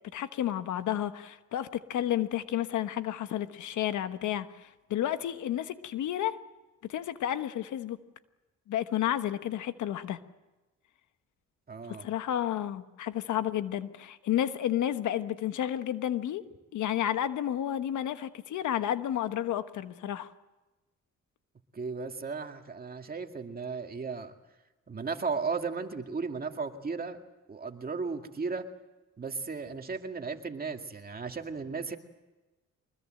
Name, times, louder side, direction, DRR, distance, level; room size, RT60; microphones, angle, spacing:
voice 1, 0.1-6.4 6.9-8.0 8.7-10.2 11.9-16.4 16.7-20.3, left 11 dB, 75° left, 11 dB, 1.2 m, -31 dB
voice 2, 11.7-12.0 21.7-24.3 24.9-27.2 27.5-28.6 29.2-32.0, right 4 dB, 30° right, 5 dB, 2.2 m, -35 dB
24.5 x 21.0 x 7.7 m, 1.1 s
cardioid pair, 90°, 30 cm